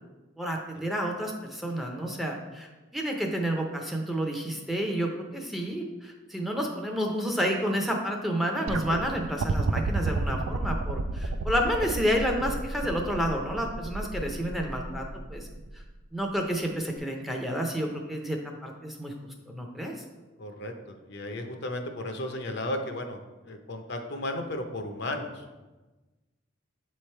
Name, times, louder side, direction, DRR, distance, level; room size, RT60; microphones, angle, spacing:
voice 1, 0.4-15.5 15.7-15.8 16.1-19.1 19.5-19.9, equal, ahead, 1 dB, 0.5 m, -30 dB
sound 1, 8.7-15.8 17.0-17.1, right 3 dB, 90° right, 0.4 m, -31 dB
voice 2, 20.4-23.2 23.4-25.7, left 1 dB, 60° left, 5 dB, 0.6 m, -35 dB
7.8 x 3.2 x 4.4 m, 1.2 s
head